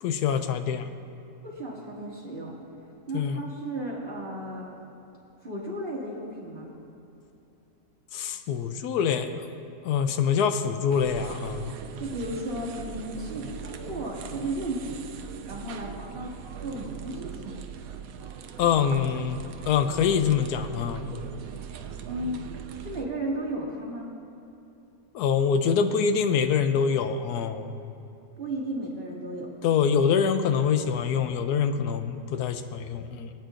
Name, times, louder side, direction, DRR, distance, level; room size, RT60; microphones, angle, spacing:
voice 1, 0.0-0.9 3.1-3.4 8.1-9.5 9.8-11.7 18.6-19.4 19.7-21.2 25.1-27.7 29.6-33.3, left 7 dB, 80° left, 8 dB, 1.1 m, -25 dB
voice 2, 1.4-2.5 3.1-4.7 5.4-6.7 12.0-15.0 15.4-16.3 16.6-17.6 22.0-22.4 22.8-24.1 28.4-29.5, right 1 dB, 35° right, -6 dB, 2.4 m, -34 dB
sound 1, 10.9-23.1, right 8 dB, 65° right, 1.0 m, -40 dB
22.0 x 9.0 x 2.5 m, 2.9 s
omnidirectional pair, 1.7 m